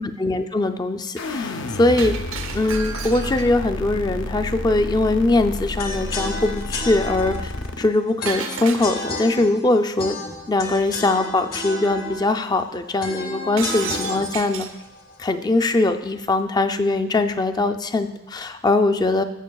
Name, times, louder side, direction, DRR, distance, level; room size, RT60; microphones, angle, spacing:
voice 1, 0.0-2.2 2.5-10.2 10.5-14.7 15.2-19.2, left 2 dB, 20° left, 7 dB, 0.4 m, -21 dB
sound 1, 1.2-7.9, left 2 dB, 65° left, 0.6 m, -30 dB
Shatter, 2.0-3.6 8.3-9.3 13.6-14.8, right 7 dB, 80° right, 0.7 m, -33 dB
sound 2, 5.8-15.9, left 2 dB, 45° left, 1.3 m, -33 dB
15.5 x 6.9 x 2.3 m, 0.99 s
head